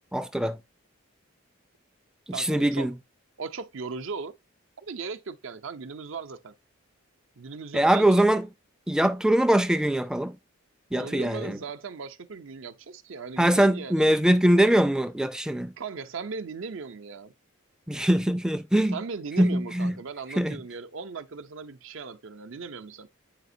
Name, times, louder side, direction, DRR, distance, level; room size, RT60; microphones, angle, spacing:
voice 1, 0.1-0.6 2.4-2.9 7.7-8.5 8.9-10.4 10.9-11.6 13.4-15.7 17.9-19.0 19.4-20.0 20.4-20.6, right 1 dB, 5° right, 0.3 m, -22 dB
voice 2, 2.3-2.9 3.4-4.3 4.8-6.5 7.4-8.2 10.9-14.1 15.8-17.3 18.9-23.1, right 4 dB, 70° right, 0.6 m, -38 dB
8.8 x 5.0 x 2.7 m
head